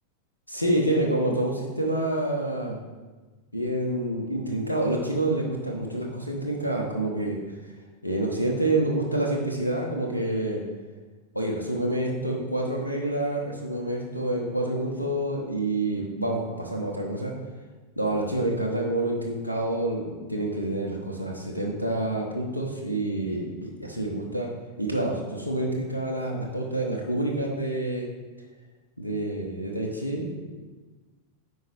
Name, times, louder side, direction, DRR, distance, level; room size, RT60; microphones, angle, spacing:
voice 1, 0.5-2.8 3.5-7.4 8.0-10.6 11.3-17.3 18.0-24.5 24.8-28.1 29.0-30.6, right 1 dB, 85° left, -1 dB, 0.9 m, -28 dB
9.3 x 4.6 x 3.4 m, 1.3 s
figure-of-eight pair, 90°, 0 cm